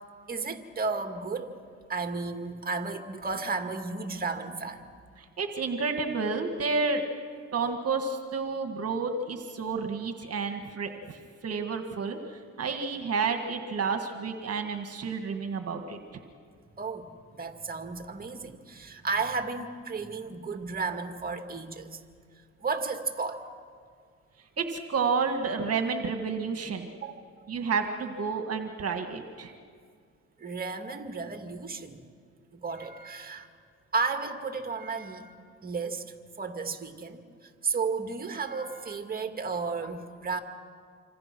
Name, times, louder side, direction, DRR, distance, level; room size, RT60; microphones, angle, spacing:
voice 1, 0.3-1.5 1.9-4.9 16.8-22.0 22.6-23.5 26.9-27.2 30.4-32.1 32.5-33.5 33.9-36.0 36.4-37.2 37.6-40.4, right 4 dB, 30° right, 6 dB, 2.1 m, -33 dB
voice 2, 5.4-7.1 7.5-16.0 24.6-26.9 27.5-29.5, right 4 dB, 55° right, 5 dB, 1.8 m, -30 dB
26.5 x 25.5 x 6.1 m, 2.1 s
cardioid pair, 90°, 30 cm